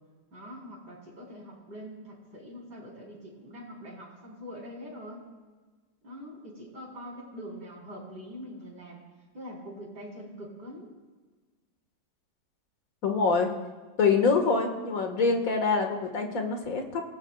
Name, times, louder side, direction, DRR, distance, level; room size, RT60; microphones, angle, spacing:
voice 1, 0.3-5.2 6.0-9.0 9.3-10.9, equal, 70° right, -4 dB, 5.0 m, -43 dB
voice 2, 13.0-13.5 14.0-17.0, left 4 dB, 50° left, 3 dB, 2.2 m, -25 dB
29.0 x 18.0 x 2.4 m, 1.3 s
omnidirectional pair, 1.9 m